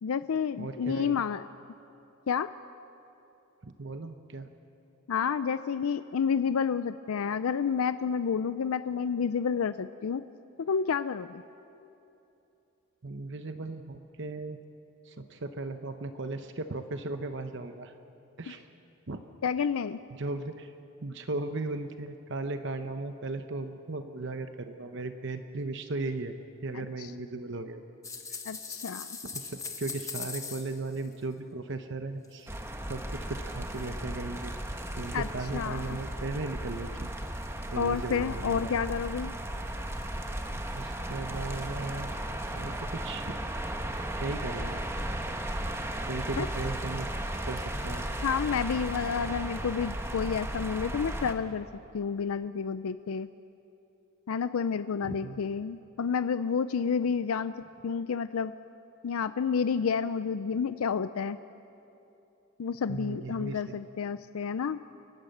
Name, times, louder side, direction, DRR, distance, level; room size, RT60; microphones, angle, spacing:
voice 1, 0.0-1.5 2.3-2.5 5.1-10.2 10.6-11.4 19.4-20.0 26.7-27.1 28.5-29.1 35.1-35.3 35.5-36.0 37.8-39.3 46.4-46.5 48.2-51.7 51.9-53.3 54.3-57.5 57.8-58.5 59.0-61.4 62.6-64.8, left 6 dB, 85° left, 13 dB, 0.4 m, -30 dB
voice 2, 0.6-1.2 3.6-4.5 13.0-14.6 15.0-17.9 18.4-18.7 19.1-19.2 19.6-19.7 20.1-20.7 21.0-26.3 26.6-27.8 29.3-32.5 32.9-37.1 37.7-38.7 40.7-42.1 42.5-43.4 44.2-44.8 46.0-47.1 47.4-48.1 50.9-51.0 55.0-55.4 62.9-63.8, right 2 dB, 55° right, 8 dB, 0.8 m, -37 dB
sound 1, 28.0-31.2 32.2-32.3 33.7-33.9 34.3-34.4 35.1-35.2 35.9-36.0 37.9-38.3 38.6-38.7 39.7-39.8, left 5 dB, 15° left, 1.3 m, -40 dB
sound 2, 32.5-51.3, right 1 dB, 10° right, 1.1 m, -35 dB
29.0 x 12.0 x 7.9 m, 2.9 s
head